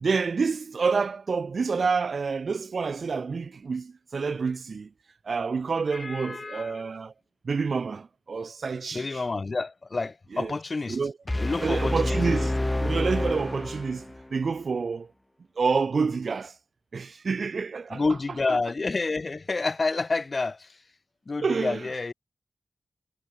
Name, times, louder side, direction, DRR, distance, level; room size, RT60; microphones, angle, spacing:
voice 1, 0.0-4.9 5.2-7.1 7.4-9.2 10.3-10.6 10.9-11.1 11.6-12.5 12.8-15.1 15.6-16.5 16.9-18.0 18.5-18.6 21.4-21.9, right 5 dB, 70° right, 0.8 m, -28 dB
voice 2, 5.9-6.8 8.9-11.0 11.3-12.5 17.9-20.8 21.3-22.1, left 3 dB, 50° left, 4.7 m, -29 dB
sound 1, 11.3-14.3, left 1 dB, 20° left, 1.3 m, -28 dB
cardioid pair, 45°, 0 cm